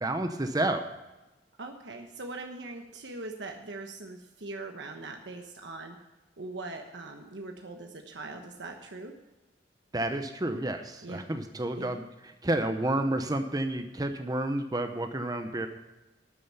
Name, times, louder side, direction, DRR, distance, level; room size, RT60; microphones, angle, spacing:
voice 1, 0.0-0.8 9.9-12.0 12.4-15.7, right 1 dB, 20° right, 7 dB, 0.8 m, -30 dB
voice 2, 1.6-6.0 6.4-9.1 11.0-11.2 11.7-11.9, right 2 dB, 75° right, 3 dB, 1.2 m, -41 dB
12.5 x 9.2 x 5.5 m, 1.1 s
head